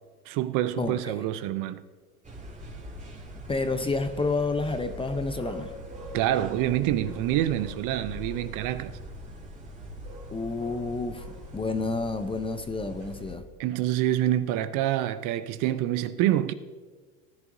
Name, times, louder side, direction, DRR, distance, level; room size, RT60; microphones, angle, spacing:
voice 1, 0.3-1.8 6.1-9.0 13.6-16.5, right 13 dB, 45° right, 0.7 m, -26 dB
voice 2, 0.8-1.2 3.5-5.7 10.3-13.4, left 3 dB, 10° left, 0.7 m, -30 dB
sound 1, 2.2-13.4, equal, 15° right, 2.2 m, -42 dB
19.0 x 10.5 x 2.7 m
hypercardioid pair, 95°, 45 cm